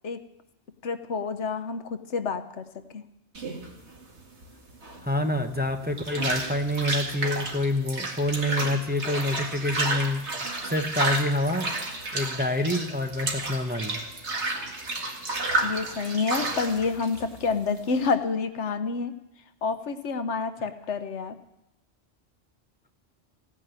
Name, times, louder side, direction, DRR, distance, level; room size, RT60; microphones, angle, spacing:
voice 1, 0.8-2.7 2.9-3.0 15.6-19.1 19.6-21.4, left 4 dB, 80° left, 10 dB, 1.2 m, -28 dB
sound 1, 3.3-18.1, right 2 dB, 70° right, 2.3 m, -31 dB
voice 2, 5.0-10.3 10.6-11.7 12.1-14.0, left 1 dB, 10° right, 5 dB, 0.9 m, -27 dB
16.0 x 9.9 x 9.0 m, 0.88 s
omnidirectional pair, 1.2 m